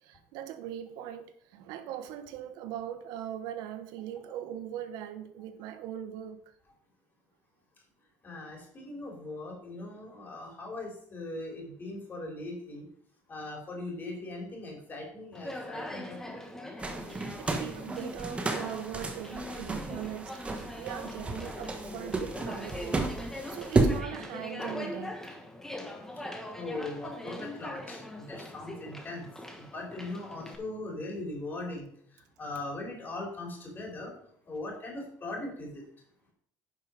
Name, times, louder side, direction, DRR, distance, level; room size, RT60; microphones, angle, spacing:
voice 1, 0.0-6.4 17.0-25.4, right 10 dB, 80° right, 1.1 m, -41 dB
voice 2, 8.2-12.8 13.3-16.4 26.5-29.3 29.6-31.9 32.4-34.1 34.5-35.8, left 2 dB, 30° left, 3.7 m, -40 dB
Conversation, 15.3-30.6, left 1 dB, 5° left, 1.4 m, -41 dB
sound 1, 16.8-24.0, right 3 dB, 15° right, 1.3 m, -32 dB
10.5 x 5.5 x 5.1 m
cardioid pair, 135°, 7 cm